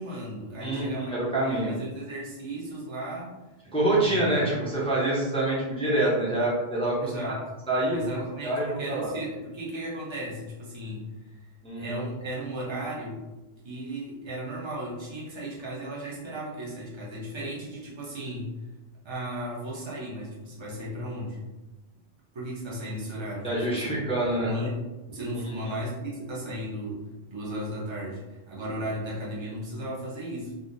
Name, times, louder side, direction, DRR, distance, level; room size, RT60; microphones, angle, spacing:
voice 1, 0.0-1.1 1.4-3.3 4.0-4.6 7.0-7.5 7.9-11.4 11.8-13.2 13.6-18.5 19.0-21.4 22.3-24.8 25.1-30.5, right 1 dB, 30° right, -5 dB, 0.8 m, -35 dB
voice 2, 0.6-1.7 3.7-7.4 7.7-8.0 8.4-9.1 11.6-12.0 23.4-24.5, right 1 dB, 5° left, -6 dB, 0.6 m, -26 dB
3.7 x 2.1 x 2.6 m, 1.1 s
omnidirectional pair, 1.1 m